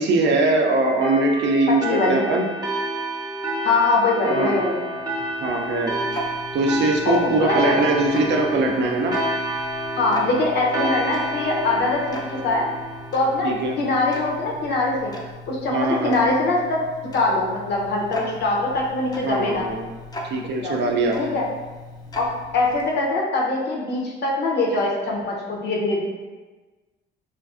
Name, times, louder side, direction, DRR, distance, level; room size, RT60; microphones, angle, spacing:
voice 1, 0.0-2.4 4.3-4.6 5.4-5.9 6.5-9.1 13.4-13.8 15.7-16.2 19.2-19.8 20.3-21.2, right 2 dB, 65° right, 1 dB, 0.5 m, -21 dB
sound 1, 1.0-14.1, right 1 dB, 20° right, 0.6 m, -29 dB
voice 2, 1.7-2.2 3.6-4.8 7.0-7.7 10.0-12.0 12.3-12.7 13.1-15.1 15.5-16.8 17.1-19.7 20.6-20.8 21.2-21.4 22.2-26.0, left 2 dB, 60° left, -3 dB, 0.7 m, -22 dB
Tick-tock, 4.8-23.1, left 1 dB, 20° left, 0.4 m, -39 dB
2.5 x 2.4 x 2.4 m, 1.2 s
cardioid pair, 90°, 20 cm